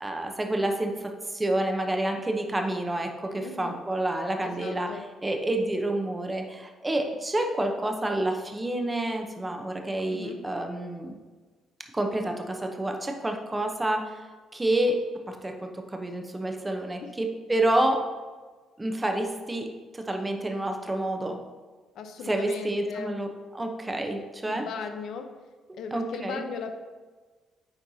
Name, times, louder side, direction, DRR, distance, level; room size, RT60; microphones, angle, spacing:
voice 1, 0.0-11.2 11.9-14.2 14.5-18.0 18.8-21.4 22.3-24.6 25.9-26.4, right 1 dB, 15° right, 3 dB, 0.8 m, -29 dB
voice 2, 3.4-3.8 4.4-5.1 10.1-10.4 17.0-17.1 21.9-23.1 24.4-25.3 25.8-26.7, left 5 dB, 75° left, 6 dB, 0.7 m, -37 dB
8.6 x 4.4 x 2.8 m, 1.3 s
cardioid pair, 90°, 0 cm